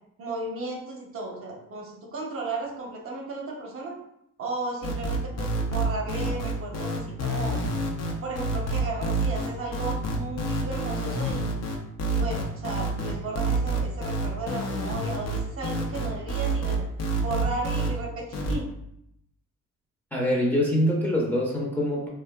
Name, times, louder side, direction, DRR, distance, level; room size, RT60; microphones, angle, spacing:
voice 1, 0.2-3.9 4.4-7.6 8.2-11.5 12.1-16.8 17.2-18.7, right 2 dB, 50° right, -1 dB, 0.6 m, -34 dB
sound 1, 4.8-17.9 18.3-18.6, right 2 dB, 60° left, 0.6 m, -28 dB
voice 2, 20.1-22.1, equal, 5° left, -4 dB, 0.6 m, -24 dB
2.5 x 2.2 x 2.2 m, 0.77 s
cardioid pair, 90°, 30 cm